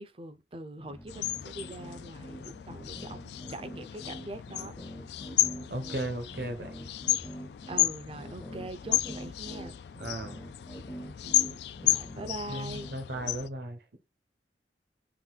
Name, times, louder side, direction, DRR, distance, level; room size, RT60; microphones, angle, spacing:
voice 1, 0.0-4.8 7.7-9.8 11.2-12.9, right 2 dB, 30° right, 0.5 m, -42 dB
sound 1, 0.8-13.4, equal, 15° left, 0.6 m, -45 dB
sound 2, 1.1-13.5, left 14 dB, 70° left, 0.3 m, -33 dB
voice 2, 5.7-6.7 10.0-10.4 12.1-13.8, right 1 dB, 65° right, 0.9 m, -36 dB
3.8 x 2.6 x 4.0 m
head